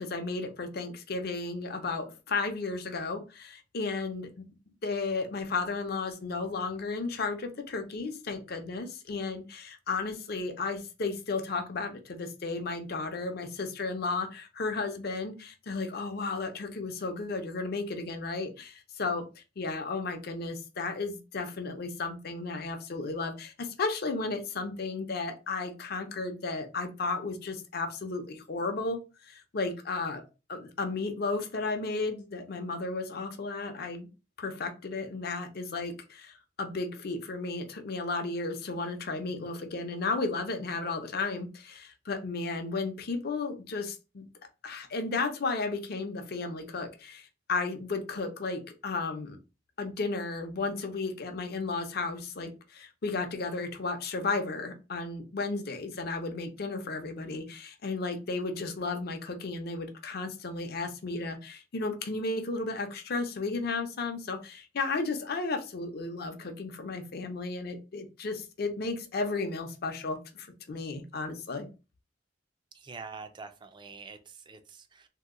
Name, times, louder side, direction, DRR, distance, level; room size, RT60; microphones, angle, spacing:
voice 1, 0.0-4.3 4.8-30.2 30.5-34.1 34.4-44.2 44.6-49.4 49.8-71.7, left 3 dB, 55° left, 6 dB, 0.6 m, -34 dB
voice 2, 72.7-75.1, right 4 dB, 25° right, 9 dB, 0.4 m, -45 dB
2.8 x 2.1 x 3.6 m, 0.30 s
head